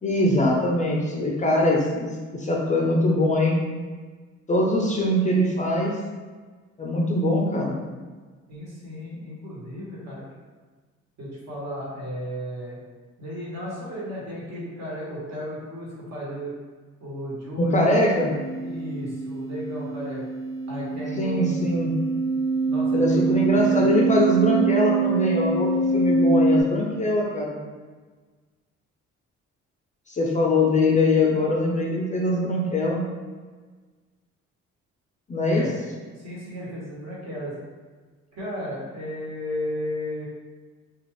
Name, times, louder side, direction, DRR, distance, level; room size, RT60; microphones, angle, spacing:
voice 1, 0.0-3.6 4.5-5.9 6.8-7.8 17.6-18.3 21.2-21.9 22.9-27.6 30.1-33.0 35.3-35.6, left 1 dB, 25° left, -1 dB, 0.4 m, -22 dB
voice 2, 8.5-10.2 11.2-12.8 13.2-16.5 17.0-17.9 18.6-20.2 20.7-21.7 22.6-23.9 35.5-35.8 36.1-37.5 38.3-40.2, equal, 60° right, -7 dB, 1.3 m, -34 dB
sound 1, 18.2-26.6, right 4 dB, 85° right, 1.0 m, -24 dB
2.5 x 2.4 x 3.1 m, 1.4 s
cardioid pair, 90°, 30 cm